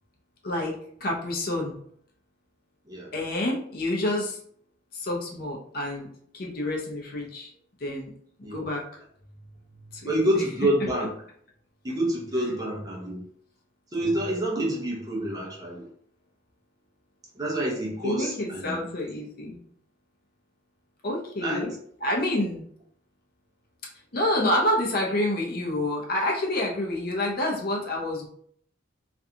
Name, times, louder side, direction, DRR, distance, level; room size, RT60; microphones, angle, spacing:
voice 1, 0.4-0.8 1.0-1.7 3.1-4.4 4.9-6.1 6.3-7.5 7.8-8.1 8.4-8.8 9.9-10.4 18.0-19.6 21.0-21.7 22.0-22.7 24.1-28.3, left 1 dB, 50° left, -1 dB, 0.6 m, -28 dB
voice 2, 10.0-11.1 11.8-13.2 13.9-15.9 17.4-18.8 21.4-21.7, right 1 dB, 20° right, -2 dB, 0.5 m, -27 dB
2.5 x 2.3 x 2.7 m, 0.63 s
head